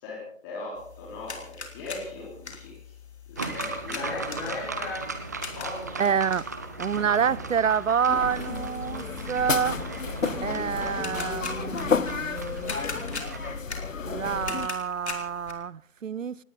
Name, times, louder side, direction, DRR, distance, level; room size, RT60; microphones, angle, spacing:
voice 1, 0.0-2.7 3.5-5.0 5.5-6.0, left 3 dB, 20° left, 4.1 m, -37 dB
sound 1, 0.8-15.5, left 4 dB, 55° left, 3.1 m, -42 dB
sound 2, 3.4-13.6, right 4 dB, 15° right, 0.6 m, -37 dB
voice 2, 6.0-6.5 6.8-9.8 10.4-12.7 14.0-16.4, right 7 dB, 75° right, 0.6 m, -27 dB
sound 3, 8.1-14.7, left 5 dB, 75° left, 1.0 m, -31 dB
19.0 x 18.0 x 4.0 m
figure-of-eight pair, 145°, 39 cm